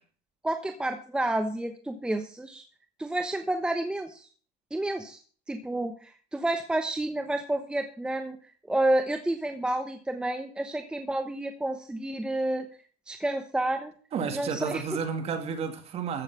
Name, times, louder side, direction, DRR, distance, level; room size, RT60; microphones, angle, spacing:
voice 1, 0.4-2.6 3.0-4.3 4.7-5.2 5.5-8.4 8.7-12.7 13.1-13.9 14.3-14.8, right 1 dB, 5° right, 1.1 m, -30 dB
voice 2, 14.1-16.2, right 6 dB, 35° right, 2.3 m, -31 dB
14.5 x 7.2 x 5.7 m
cardioid pair, 150°, 18 cm